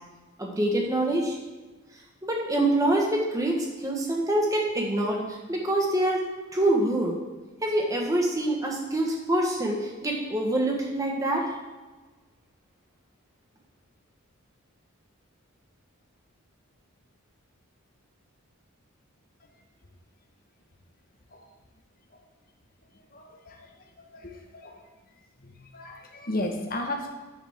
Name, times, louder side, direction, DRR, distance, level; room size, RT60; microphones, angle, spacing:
voice 1, 0.4-1.4 2.2-6.2 6.5-7.2 7.6-11.5, right 1 dB, 15° right, 0 dB, 1.3 m, -25 dB
voice 2, 23.1-23.6 24.0-24.8 25.4-27.1, left 1 dB, 40° left, 2 dB, 1.2 m, -34 dB
9.9 x 8.2 x 3.6 m, 1.3 s
head